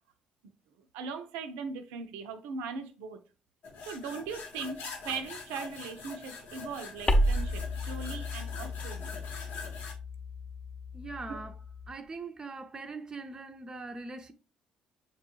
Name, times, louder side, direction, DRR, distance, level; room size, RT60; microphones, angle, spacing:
voice 1, 0.9-3.2 3.9-9.1 11.3-11.4, right 5 dB, 85° right, 0.4 m, -39 dB
sound 1, 3.6-9.9, left 4 dB, 75° left, 0.8 m, -44 dB
sound 2, 7.1-11.9, equal, 25° left, 0.7 m, -32 dB
voice 2, 10.9-11.5 11.9-14.3, right 3 dB, 25° right, 0.5 m, -41 dB
6.5 x 2.2 x 3.0 m
supercardioid pair, 65°, 3 cm